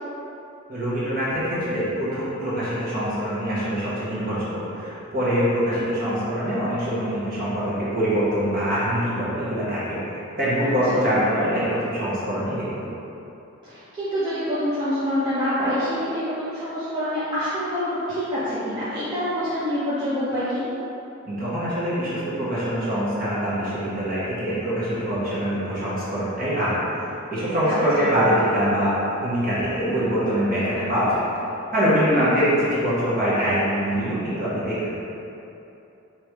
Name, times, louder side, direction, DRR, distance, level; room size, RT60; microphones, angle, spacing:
voice 1, 0.7-12.9 21.2-31.2 31.7-34.9, equal, 40° right, -10 dB, 1.5 m, -24 dB
voice 2, 13.6-20.6 27.7-28.1 32.1-32.4, equal, 20° right, -13 dB, 0.7 m, -26 dB
3.5 x 3.1 x 4.7 m, 2.9 s
head